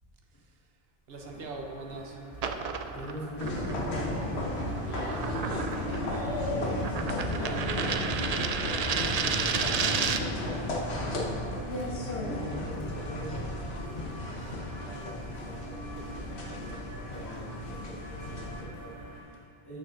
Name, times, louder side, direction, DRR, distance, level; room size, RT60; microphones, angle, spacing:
voice 1, 0.3-0.8 1.1-2.7 4.5-11.4 19.3-19.4, right 2 dB, 70° right, 2 dB, 1.1 m, -45 dB
sound 1, 1.1-19.2, equal, 55° left, 1.6 m, -46 dB
sound 2, 2.3-10.4, right 6 dB, 55° right, 0.4 m, -32 dB
voice 2, 2.9-4.3 11.9-19.8, right 1 dB, 20° left, -10 dB, 1.8 m, -44 dB
sound 3, 3.4-18.6, left 1 dB, 85° left, 1.3 m, -34 dB
12.0 x 6.5 x 3.8 m, 2.6 s
omnidirectional pair, 1.1 m